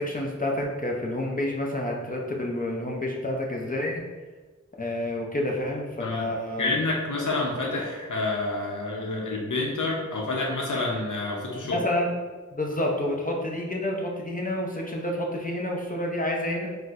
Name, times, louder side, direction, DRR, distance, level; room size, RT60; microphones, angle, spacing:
voice 1, 0.0-4.0 4.8-6.7 11.6-12.1 12.5-16.7, left 1 dB, 30° left, -1 dB, 0.5 m, -29 dB
voice 2, 6.0-6.3 6.6-11.8, left 2 dB, 80° left, -2 dB, 0.6 m, -28 dB
4.2 x 2.1 x 2.4 m, 1.3 s
wide cardioid pair, 50°, 30 cm